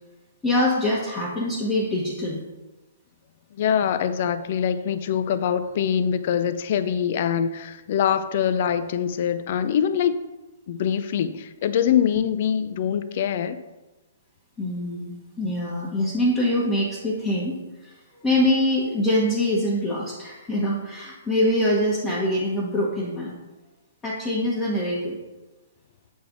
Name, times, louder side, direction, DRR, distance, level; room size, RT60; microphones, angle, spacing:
voice 1, 0.4-2.4 14.6-17.6 17.8-17.9 18.2-23.3 24.0-25.2, left 1 dB, 15° left, -7 dB, 1.2 m, -24 dB
voice 2, 3.6-10.1 10.7-13.6, left 8 dB, 50° left, 12 dB, 0.4 m, -24 dB
7.8 x 3.4 x 3.9 m, 1.1 s
hypercardioid pair, 140°, 0 cm